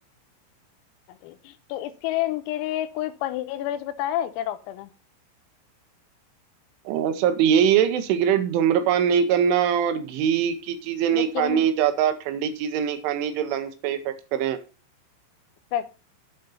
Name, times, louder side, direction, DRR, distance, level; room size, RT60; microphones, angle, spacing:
voice 1, 1.2-4.9 11.1-11.7 15.7-16.0, left 13 dB, 85° left, 3.6 m, -29 dB
voice 2, 6.9-14.6, right 8 dB, 80° right, 3.0 m, -22 dB
7.9 x 7.6 x 5.4 m
omnidirectional pair, 6.0 m